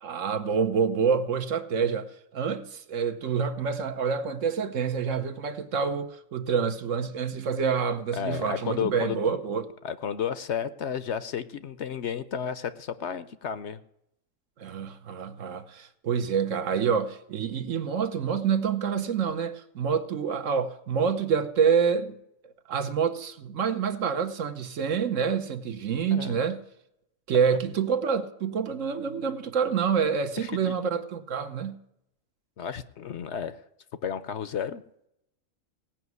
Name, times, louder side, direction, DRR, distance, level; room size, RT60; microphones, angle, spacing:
voice 1, 0.0-9.7 14.6-22.2 22.7-26.6 27.3-31.8, right 6 dB, 70° right, 1.3 m, -27 dB
voice 2, 8.1-9.2 9.8-13.8 26.1-26.4 27.5-27.6 30.4-30.8 32.6-33.6 34.0-34.8, left 8 dB, 60° left, 0.9 m, -32 dB
17.5 x 5.9 x 9.4 m
omnidirectional pair, 1.4 m